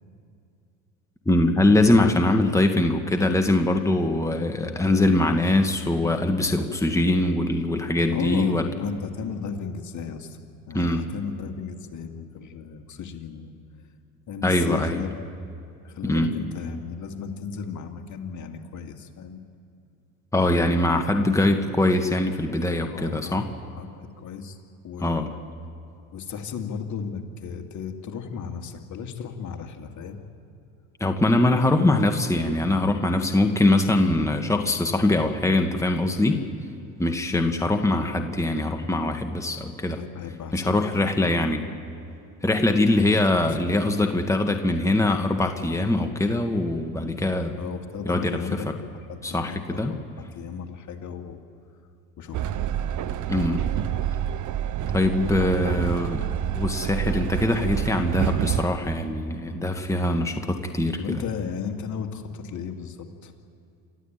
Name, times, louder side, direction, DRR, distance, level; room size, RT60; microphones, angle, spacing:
voice 1, 1.2-8.6 10.7-11.1 14.4-15.0 16.0-16.4 20.3-23.5 25.0-25.3 31.0-36.4 37.0-40.0 40.5-41.6 42.4-47.6 48.0-48.4 49.2-49.9 53.3-53.6 54.9-61.2, left 2 dB, 5° left, 5 dB, 1.7 m, -22 dB
voice 2, 8.1-10.4 10.7-13.6 14.3-15.2 15.8-19.4 22.9-25.3 26.1-30.2 37.3-37.5 39.9-41.2 43.1-44.0 47.6-51.4 52.2-52.6 61.0-63.3, left 6 dB, 45° left, 4 dB, 2.4 m, -35 dB
Train, 52.3-58.7, right 10 dB, 45° right, 1.0 m, -28 dB
27.5 x 12.5 x 9.0 m, 2.6 s
hypercardioid pair, 75°, 41 cm